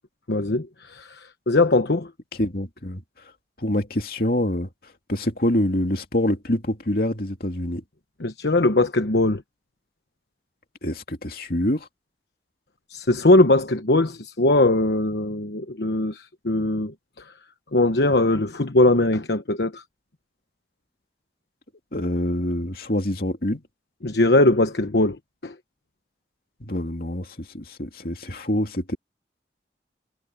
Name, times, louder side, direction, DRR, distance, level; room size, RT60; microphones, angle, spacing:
voice 1, 0.3-2.1 8.2-9.4 12.9-16.9 17.7-19.8 24.0-25.2 25.4-25.5, left 2 dB, 70° left, 1.1 m, -20 dB
voice 2, 2.4-3.0 3.6-4.7 5.1-7.8 10.8-11.9 21.9-23.6 26.6-29.0, left 1 dB, 55° left, 2.9 m, -25 dB
head